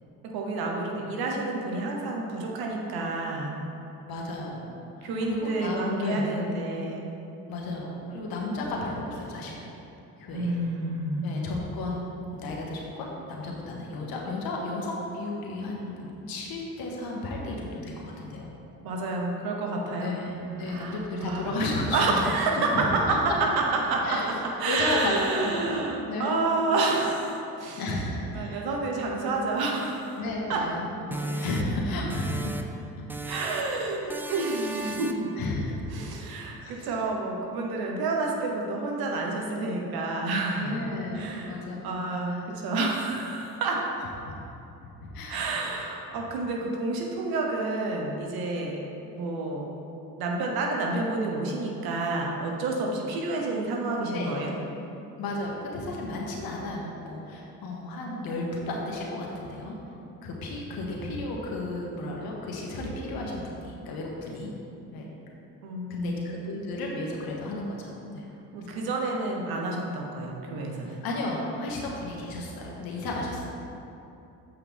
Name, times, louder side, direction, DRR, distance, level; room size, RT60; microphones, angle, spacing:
voice 1, 0.2-3.5 5.0-7.1 10.3-11.3 18.8-20.1 20.6-21.6 21.9-27.8 28.3-30.2 30.5-30.6 33.3-35.3 35.9-40.8 41.1-41.5 41.8-43.9 45.3-48.8 49.1-49.7 50.2-54.6 65.6-66.2 68.5-71.0, right 3 dB, 80° right, 0 dB, 1.1 m, -29 dB
voice 2, 4.0-6.3 7.5-9.6 10.2-10.5 11.2-12.0 12.3-18.5 20.0-22.2 22.4-23.2 24.0-25.8 26.1-26.3 27.8-28.6 30.2-32.5 32.8-32.9 34.3-34.4 35.4-36.0 36.6-36.9 40.6-42.4 44.2-44.3 44.8-45.5 54.1-54.4 55.2-59.8 60.2-64.5 64.9-65.1 65.9-68.3 68.6-68.8 70.8-73.5, left 2 dB, 75° left, -2 dB, 1.4 m, -33 dB
sound 1, 31.1-32.8 33.1-33.8 34.1-35.4, right 1 dB, 5° right, 0.3 m, -36 dB
7.7 x 5.6 x 3.5 m, 2.9 s
supercardioid pair, 75°, 36 cm